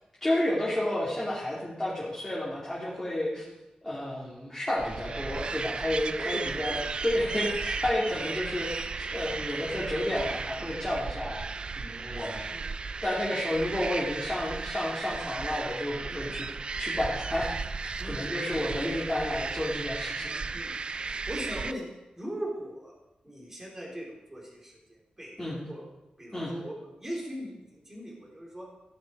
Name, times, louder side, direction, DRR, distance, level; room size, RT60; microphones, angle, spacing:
voice 1, 0.2-3.4 3.8-11.4 11.8-12.5 13.0-16.5 16.8-20.4 25.4-25.6 26.3-26.5, left 1 dB, 10° left, -8 dB, 3.0 m, -31 dB
sound 1, 4.8-21.7, right 4 dB, 40° right, 0.4 m, -35 dB
voice 2, 18.0-18.8 20.5-20.8 21.1-21.9 22.1-22.9 23.2-25.3 25.7-25.8 26.2-28.7, equal, 15° right, -2 dB, 4.1 m, -40 dB
15.5 x 11.0 x 4.8 m, 0.99 s
wide cardioid pair, 160°, 3 cm